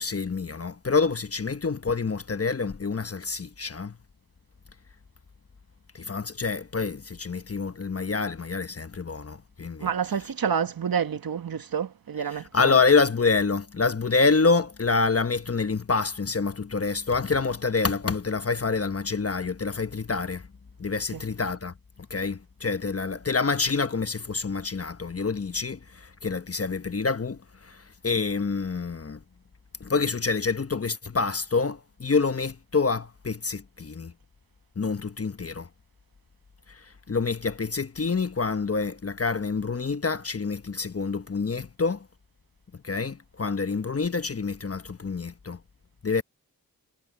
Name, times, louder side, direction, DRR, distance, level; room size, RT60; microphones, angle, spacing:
voice 1, 0.0-3.9 5.9-9.9 12.2-20.5 20.8-21.7 22.1-29.2 29.8-34.1 34.8-35.7 36.7-42.1 42.8-45.6 46.0-46.2, left 4 dB, 40° left, 1.1 m, -27 dB
voice 2, 9.8-12.8 21.1-21.2, right 7 dB, 75° right, 1.4 m, -29 dB
cardioid pair, 50°, 36 cm